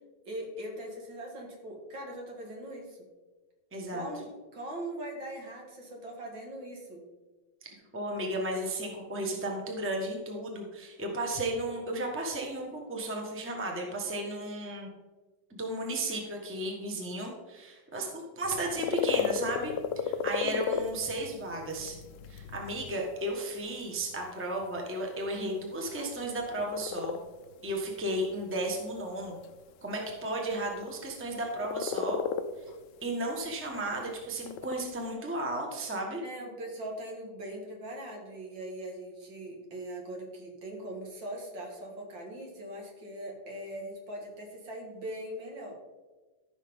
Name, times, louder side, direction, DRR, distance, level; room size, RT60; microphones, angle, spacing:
voice 1, 0.3-3.0 3.9-7.0 20.4-20.8 36.2-45.8, right 1 dB, 65° right, 0 dB, 2.5 m, -41 dB
voice 2, 3.7-4.1 7.9-14.9 15.5-19.7 20.0-22.0 22.3-27.2 27.6-29.4 29.8-32.2 33.0-36.2, right 1 dB, 5° right, 0 dB, 1.1 m, -34 dB
sound 1, 18.4-35.1, left 7 dB, 70° left, 1.1 m, -36 dB
14.0 x 6.1 x 3.7 m, 1.3 s
omnidirectional pair, 2.3 m